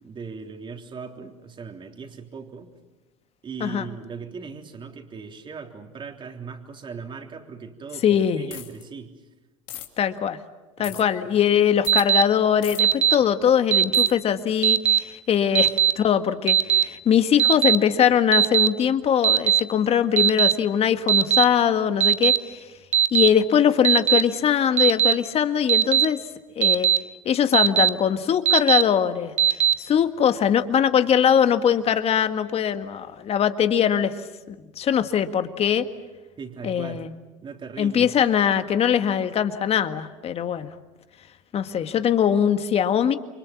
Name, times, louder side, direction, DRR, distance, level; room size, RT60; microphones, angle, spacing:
voice 1, 0.0-2.7 3.4-9.2 10.8-11.0 15.6-15.8 36.4-37.1 37.4-38.1, right 5 dB, 30° right, 4 dB, 3.5 m, -39 dB
voice 2, 8.0-8.5 10.0-10.4 10.8-22.7 23.1-26.2 26.6-26.9 27.3-34.2 34.5-35.9 36.6-37.1 37.8-40.7 41.5-43.2, left 8 dB, 40° left, 9 dB, 1.8 m, -21 dB
sound 1, 8.5-8.8 9.7-9.9 10.8-11.0 11.8-12.1 12.6-12.8 13.9-14.1, left 13 dB, 60° left, 3.0 m, -37 dB
Alarm, 11.9-12.2 12.8-13.1 13.7-14.1 14.6-15.0 15.5-15.9 16.5-16.8 17.4-17.8 18.3-18.7 19.2-19.6 20.2-20.5 21.1-21.4 22.0-22.4 22.9-23.3 23.8-24.2 24.8-25.1 25.7-26.0 26.6-27.0 27.5-27.9 28.5-28.8 29.4-29.7, right 10 dB, 45° right, 1.1 m, -18 dB
29.0 x 25.0 x 7.3 m, 1.2 s
hypercardioid pair, 90°, 16 cm